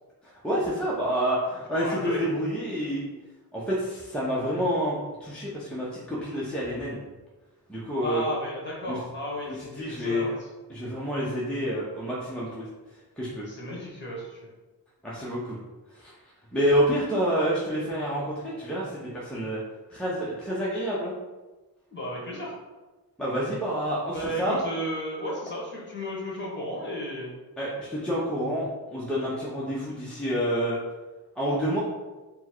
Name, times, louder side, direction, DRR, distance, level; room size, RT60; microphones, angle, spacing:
voice 1, 0.4-3.0 3.5-7.0 7.7-8.2 8.9-9.0 9.6-10.3 10.7-12.7 13.2-13.5 15.0-15.6 15.9-16.1 16.5-19.6 19.9-21.1 23.2-24.6 27.6-30.8 31.4-31.8, equal, ahead, -7 dB, 0.7 m, -28 dB
voice 2, 1.7-2.3 8.0-10.3 13.5-14.4 21.9-22.5 24.1-27.3, equal, 25° left, -4 dB, 1.4 m, -33 dB
4.3 x 2.2 x 4.4 m, 1.2 s
wide cardioid pair, 105°, 39 cm